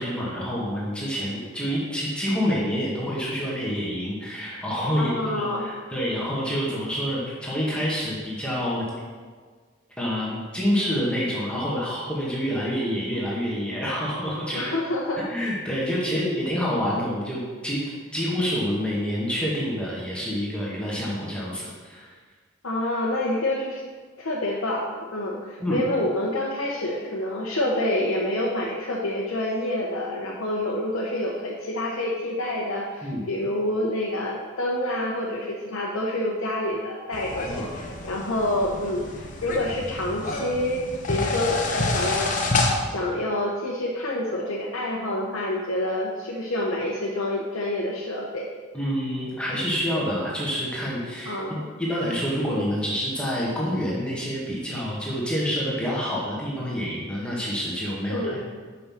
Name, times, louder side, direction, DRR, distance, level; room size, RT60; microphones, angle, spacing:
voice 1, 0.0-8.8 10.0-14.6 15.3-17.8 18.1-22.1 25.6-25.8 33.0-33.2 37.4-37.7 48.7-58.4, equal, 5° left, -6 dB, 1.5 m, -27 dB
voice 2, 5.0-5.7 14.5-15.3 16.1-16.4 22.6-23.8 24.2-48.5 51.2-51.6 58.1-58.4, left 1 dB, 90° left, -4 dB, 0.9 m, -27 dB
sound 1, 37.1-42.7, left 2 dB, 40° left, 0.8 m, -28 dB
5.5 x 5.5 x 5.8 m, 1.5 s
head